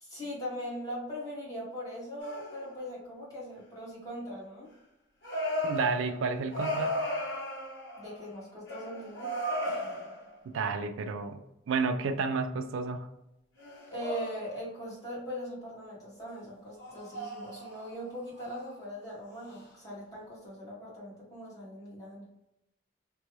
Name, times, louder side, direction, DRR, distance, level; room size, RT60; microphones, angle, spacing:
voice 1, 0.0-4.7 8.0-9.4 13.9-22.2, equal, 20° left, 1.3 m, -40 dB
sound 1, 2.2-2.8 5.2-8.4 8.7-10.4 13.6-14.7 16.8-18.0 18.4-18.7 19.4-19.6, left 1 dB, 55° left, 1.0 m, -36 dB
voice 2, 5.6-7.0 10.4-11.4 11.7-13.1, right 4 dB, 85° right, 0.3 m, -31 dB
3.0 x 2.3 x 3.1 m
head